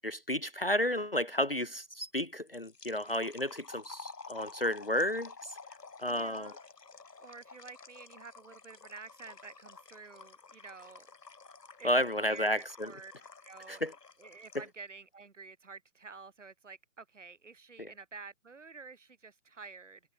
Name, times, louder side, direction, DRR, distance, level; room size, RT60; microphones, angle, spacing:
voice 1, 0.0-5.5 6.0-6.5 11.8-12.9 13.7-13.9 17.8-17.9, left 1 dB, 35° left, 0.8 m, -32 dB
sound 1, 2.2-14.8, left 4 dB, 75° left, 3.3 m, -51 dB
voice 2, 6.1-6.6 7.2-11.1 11.8-13.1 13.4-13.8 14.2-20.0, right 4 dB, 45° right, 5.3 m, -49 dB
hypercardioid pair, 180°, 48 cm